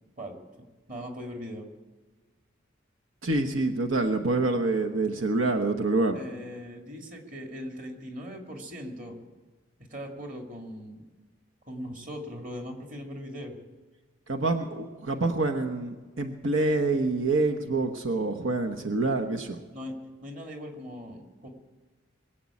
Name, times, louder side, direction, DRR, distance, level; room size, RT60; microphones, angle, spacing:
voice 1, 0.9-1.7 6.1-9.2 9.9-11.0 11.7-13.5 19.7-21.5, equal, 40° right, 3 dB, 2.3 m, -39 dB
voice 2, 3.2-6.2 14.3-19.6, right 2 dB, 90° right, 4 dB, 1.1 m, -26 dB
22.5 x 7.6 x 8.5 m, 1.3 s
head